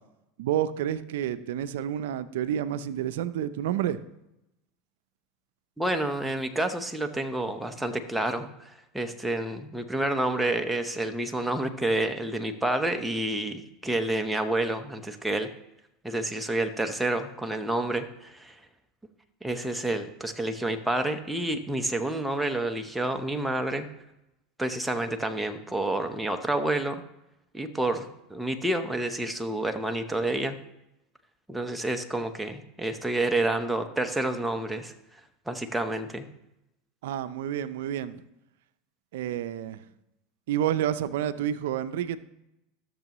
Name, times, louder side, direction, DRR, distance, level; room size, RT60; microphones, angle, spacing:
voice 1, 0.4-4.0 37.0-38.2 39.1-39.8 40.5-42.2, right 10 dB, 75° right, 14 dB, 0.5 m, -29 dB
voice 2, 5.8-15.5 16.0-18.5 19.4-23.9 24.6-27.0 27.5-30.6 31.5-34.9 35.5-36.3, right 1 dB, 5° right, 6 dB, 0.9 m, -29 dB
13.5 x 6.8 x 3.0 m, 0.89 s
hypercardioid pair, 100°, 0 cm